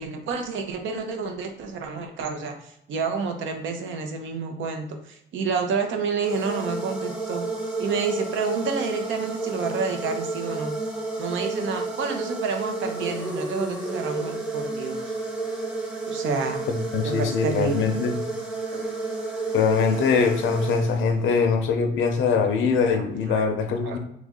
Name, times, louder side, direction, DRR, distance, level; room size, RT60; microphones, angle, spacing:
voice 1, 0.0-7.5 7.8-10.8 11.2-15.1 16.1-16.6 17.0-17.9 18.7-18.8 22.9-23.5 23.8-24.0, right 5 dB, 75° right, 5 dB, 0.6 m, -29 dB
sound 1, 6.2-21.4, right 3 dB, 5° right, 0.7 m, -31 dB
voice 2, 16.9-18.2 19.5-24.0, left 5 dB, 75° left, 6 dB, 0.5 m, -22 dB
3.0 x 2.4 x 3.6 m, 0.75 s
cardioid pair, 90°, 20 cm